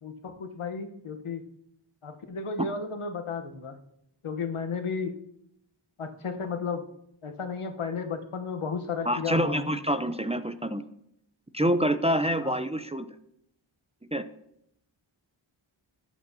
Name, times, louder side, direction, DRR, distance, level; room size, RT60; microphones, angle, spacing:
voice 1, 0.0-1.5 2.0-3.8 4.2-5.2 6.0-6.9 7.2-9.7 12.4-12.5, left 5 dB, 80° left, 6 dB, 1.0 m, -33 dB
voice 2, 9.1-10.8 11.5-13.1 14.1-14.2, equal, 15° right, 10 dB, 0.5 m, -26 dB
13.5 x 7.8 x 2.7 m, 0.76 s
wide cardioid pair, 45°, 50 cm